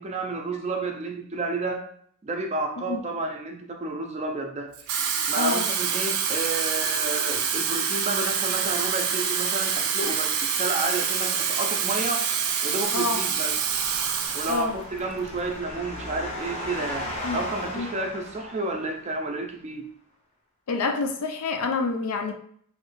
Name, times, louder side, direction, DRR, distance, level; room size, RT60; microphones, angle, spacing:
voice 1, 0.0-1.9 2.2-4.7 5.3-12.2 12.6-13.6 14.3-19.9, right 2 dB, 30° right, 3 dB, 0.4 m, -31 dB
Water tap faucet / Fill (with liquid), 4.7-14.7 15.0-15.3, right 7 dB, 90° right, 0.5 m, -26 dB
voice 2, 5.4-5.7 12.9-13.2 14.5-14.8 17.2-17.5 17.7-17.9 20.7-22.3, left 4 dB, 85° left, 5 dB, 0.5 m, -27 dB
sound 1, 12.9-19.1, left 1 dB, 30° left, 0.6 m, -37 dB
3.2 x 2.3 x 3.0 m, 0.62 s
head